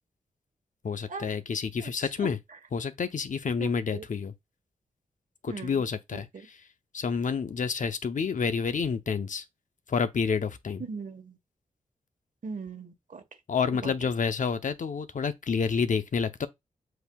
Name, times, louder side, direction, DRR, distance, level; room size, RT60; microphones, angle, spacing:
voice 1, 0.8-2.4 2.7-4.3 5.4-6.3 6.9-9.4 9.9-10.8 13.5-16.5, left 5 dB, 60° left, 0.7 m, -29 dB
voice 2, 1.8-2.6 3.6-4.0 5.5-5.8 6.1-6.5 10.8-11.4 12.4-13.2 13.7-14.1, right 5 dB, 60° right, 1.3 m, -40 dB
7.8 x 2.7 x 2.3 m
cardioid pair, 55°, 15 cm